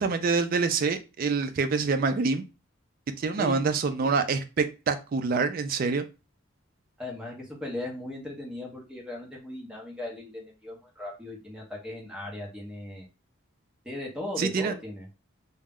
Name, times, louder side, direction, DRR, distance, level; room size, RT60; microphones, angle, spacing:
voice 1, 0.0-2.4 3.2-6.0 14.4-14.7, right 4 dB, 45° right, 8 dB, 0.3 m, -26 dB
voice 2, 7.0-13.0 13.8-15.1, left 2 dB, 5° right, -2 dB, 0.7 m, -37 dB
2.2 x 2.0 x 3.5 m, 0.30 s
head